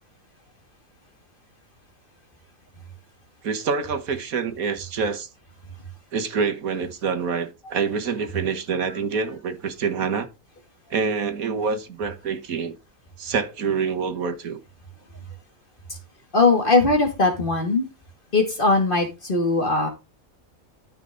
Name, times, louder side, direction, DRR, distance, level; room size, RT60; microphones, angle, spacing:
voice 1, 3.4-5.3 6.1-10.3 10.9-12.7 13.2-14.6, right 5 dB, 75° right, 1.7 m, -26 dB
voice 2, 16.3-17.9 18.3-19.9, left 3 dB, 35° left, 2.7 m, -20 dB
13.0 x 5.6 x 3.9 m
omnidirectional pair, 1.5 m